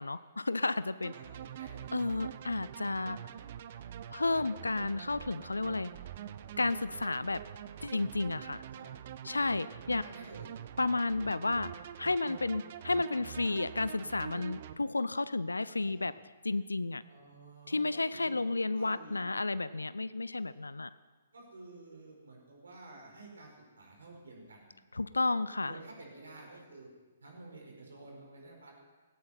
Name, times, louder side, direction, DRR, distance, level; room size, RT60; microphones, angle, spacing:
voice 1, 0.0-1.1 1.9-3.2 4.1-5.9 6.6-7.4 7.8-8.6 9.2-10.0 10.8-11.7 12.0-16.1 16.4-17.0 17.7-20.9 24.9-25.8, left 3 dB, 80° left, 17 dB, 0.5 m, -32 dB
sound 1, 1.0-14.7, right 10 dB, 45° right, 0.7 m, -45 dB
voice 2, 1.1-2.0 2.6-2.8 3.3-3.4 8.7-8.9 9.8-10.5 12.2-12.4 15.7-16.1 17.0-19.2 21.3-24.7 25.6-26.9 27.2-28.7, right 2 dB, 70° right, 1 dB, 5.1 m, -51 dB
17.0 x 16.5 x 4.5 m, 1.3 s
figure-of-eight pair, 125°, 0 cm